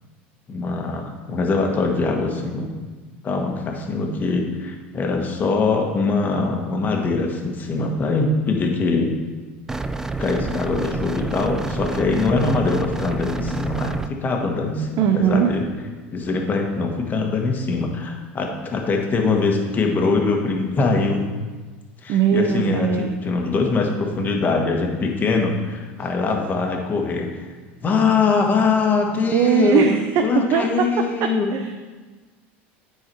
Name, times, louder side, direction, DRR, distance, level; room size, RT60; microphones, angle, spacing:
voice 1, 0.5-2.7 3.2-9.1 10.2-15.6 16.1-21.2 22.0-27.5 27.8-29.9 30.2-31.5, left 4 dB, 30° left, 2 dB, 1.4 m, -22 dB
sound 1, 9.7-14.1, right 3 dB, 10° right, 0.4 m, -28 dB
voice 2, 15.0-15.5 22.1-23.1 29.3-30.7 31.5-31.9, right 8 dB, 55° right, 5 dB, 0.7 m, -20 dB
9.8 x 4.8 x 4.6 m, 1.4 s
supercardioid pair, 110°, 6 cm